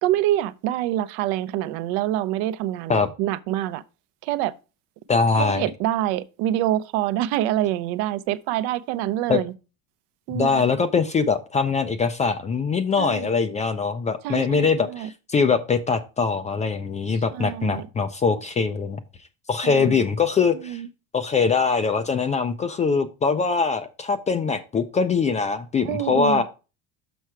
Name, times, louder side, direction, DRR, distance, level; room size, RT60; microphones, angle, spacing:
voice 1, 0.0-3.8 4.2-4.5 5.4-9.5 10.3-10.7 13.0-13.3 14.2-15.1 17.3-17.9 19.6-20.0 20.6-20.9 25.8-26.4, right 13 dB, 70° right, 0.7 m, -26 dB
voice 2, 5.1-5.7 9.3-9.4 10.3-19.0 19.5-20.8 21.1-26.4, left 5 dB, 20° left, 0.3 m, -22 dB
6.2 x 5.5 x 4.5 m
cardioid pair, 135°, 40 cm